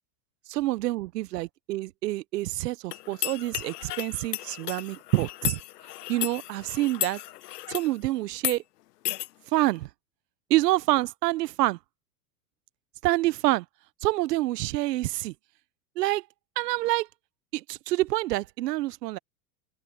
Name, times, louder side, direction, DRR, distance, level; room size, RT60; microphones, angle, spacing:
voice 1, 0.5-5.6 6.1-7.2 7.7-8.6 9.5-9.9 10.5-11.8 13.0-13.6 14.0-15.3 16.0-16.2 16.6-17.1 17.5-19.2, right 17 dB, 85° right, 0.7 m, -27 dB
sound 1, 2.9-7.9 8.4-8.6 9.1-9.3, left 15 dB, 80° left, 1.1 m, -34 dB
open air
supercardioid pair, 150°, 47 cm